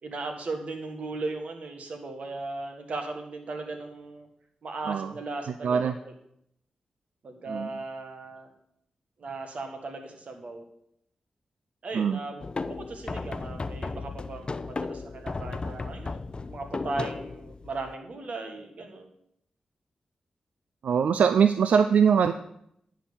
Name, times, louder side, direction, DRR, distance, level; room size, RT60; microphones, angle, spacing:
voice 1, 0.0-4.3 4.6-6.1 7.2-8.5 9.2-10.6 11.8-19.1, right 3 dB, 65° right, 4 dB, 1.7 m, -37 dB
voice 2, 5.6-5.9 7.5-7.7 11.9-12.2 20.8-22.3, right 7 dB, 85° right, 10 dB, 0.4 m, -22 dB
sound 1, 12.4-17.9, left 3 dB, 40° left, 0.5 m, -35 dB
10.5 x 4.8 x 7.0 m, 0.74 s
cardioid pair, 60°, 2 cm